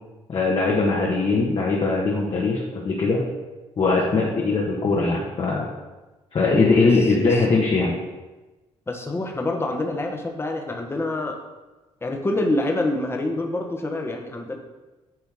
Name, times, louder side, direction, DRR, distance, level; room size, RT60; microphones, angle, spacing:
voice 1, 0.3-3.2 3.8-5.6 6.3-7.9, left 3 dB, 45° left, -4 dB, 1.5 m, -21 dB
voice 2, 7.2-7.6 8.9-11.4 12.0-14.6, left 2 dB, 20° left, 3 dB, 1.2 m, -26 dB
9.4 x 3.3 x 6.3 m, 1.1 s
cardioid pair, 85°, 12 cm